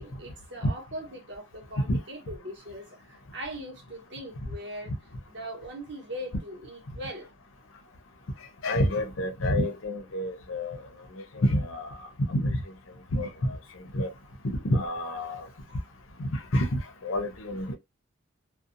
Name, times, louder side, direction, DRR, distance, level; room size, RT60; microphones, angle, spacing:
voice 1, 0.0-2.9 3.3-4.9 5.3-7.3 15.7-15.8, equal, 55° right, 0.9 m, -40 dB
voice 2, 8.6-10.8 11.3-11.9 12.3-12.6 13.1-14.1 14.6-15.5 16.2-16.7 17.0-17.8, left 1 dB, 85° left, 0.7 m, -28 dB
2.6 x 2.2 x 2.5 m
head